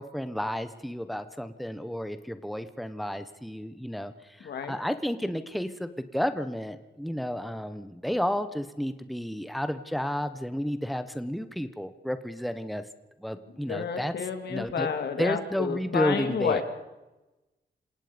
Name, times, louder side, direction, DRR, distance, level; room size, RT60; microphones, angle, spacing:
voice 1, 0.0-12.8 13.2-14.9 15.2-16.6, equal, ahead, 10 dB, 1.3 m, -32 dB
voice 2, 4.4-4.8 13.7-16.6, left 6 dB, 80° left, 7 dB, 2.7 m, -30 dB
27.5 x 18.0 x 5.3 m, 1.0 s
wide cardioid pair, 115°, 17 cm